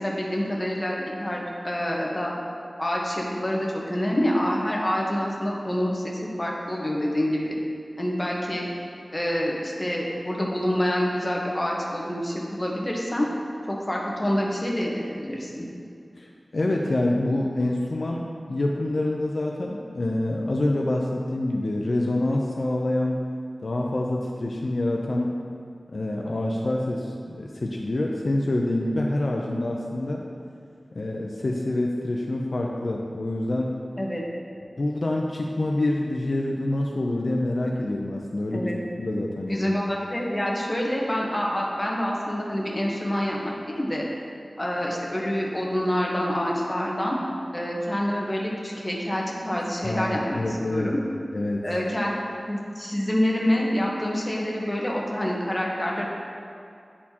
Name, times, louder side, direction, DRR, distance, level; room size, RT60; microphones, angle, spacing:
voice 1, 0.0-2.3 2.8-7.5 8.0-8.7 9.1-13.3 13.7-15.7 34.0-34.2 38.5-38.8 39.5-44.0 44.6-47.1 47.5-50.4 50.7-51.0 51.6-52.1 52.5-56.1, equal, 20° left, -3 dB, 1.0 m, -27 dB
voice 2, 16.2-23.2 23.6-25.3 25.9-30.2 30.9-33.7 34.8-38.7 39.0-39.7 49.8-50.9 51.3-51.6, left 1 dB, 65° left, -1 dB, 0.5 m, -26 dB
9.7 x 4.3 x 2.8 m, 2.4 s
wide cardioid pair, 75°, 0 cm